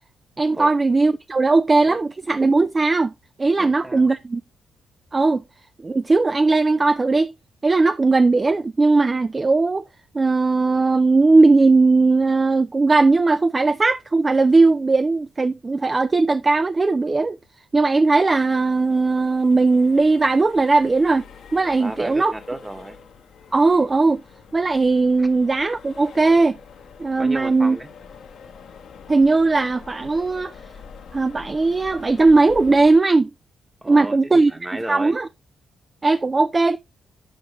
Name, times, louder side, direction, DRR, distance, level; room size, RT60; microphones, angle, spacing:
voice 1, 0.4-3.1 3.4-4.4 5.1-5.4 5.8-7.3 7.6-9.8 10.1-17.4 17.7-21.2 21.5-22.3 23.5-24.2 24.5-26.6 27.0-27.8 29.1-30.5 31.1-33.3 33.9-34.5 34.9-35.3 36.0-36.8, right 3 dB, 30° right, 0.3 m, -18 dB
voice 2, 3.6-4.1 21.8-23.0 25.2-25.3 27.2-27.9 33.8-35.1, right 1 dB, 15° right, 1.1 m, -33 dB
Accelerating revving vroom, 18.4-33.0, left 6 dB, 65° left, 1.1 m, -44 dB
7.8 x 4.9 x 3.0 m
hypercardioid pair, 45°, 0 cm